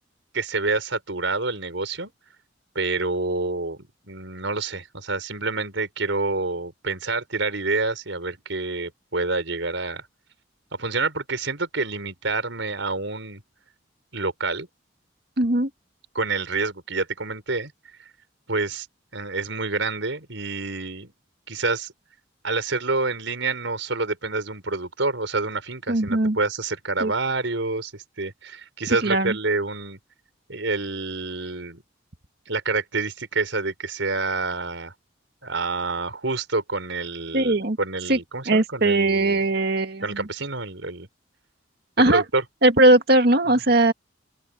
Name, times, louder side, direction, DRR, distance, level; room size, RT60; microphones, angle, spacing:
voice 1, 0.3-2.1 2.7-10.0 10.7-13.4 14.1-14.7 16.1-17.7 18.5-18.9 19.1-21.1 21.5-21.9 22.4-30.0 30.5-31.8 32.5-34.9 35.4-39.4 40.0-41.1 42.0-42.4, right 3 dB, 75° right, 4.8 m, -27 dB
voice 2, 15.4-15.7 25.9-26.4 27.0-27.1 29.0-29.4 37.3-37.8 38.1-38.2 38.5-40.2 42.0-42.2 42.6-43.9, right 2 dB, 55° right, 1.9 m, -19 dB
open air
head